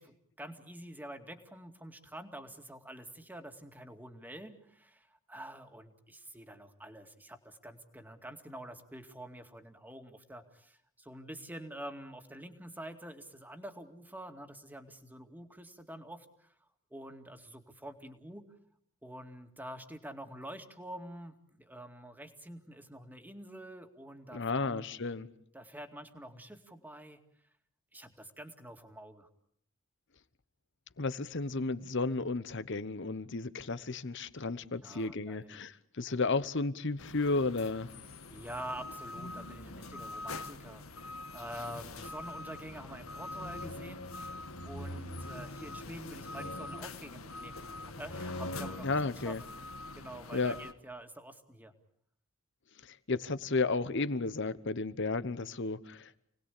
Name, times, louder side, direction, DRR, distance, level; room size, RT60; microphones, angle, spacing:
voice 1, 0.0-16.5 16.9-18.5 19.0-24.8 25.5-27.2 27.9-29.3 34.8-35.6 38.3-44.1 44.4-47.7 48.0-49.4 49.9-51.7, right 1 dB, 10° right, 2.3 m, -47 dB
voice 2, 24.3-25.3 31.0-37.9 48.8-49.4 50.3-50.6 52.8-56.2, left 3 dB, 60° left, 1.1 m, -33 dB
sound 1, 37.0-50.7, left 2 dB, 80° left, 1.9 m, -43 dB
29.5 x 19.5 x 8.5 m
head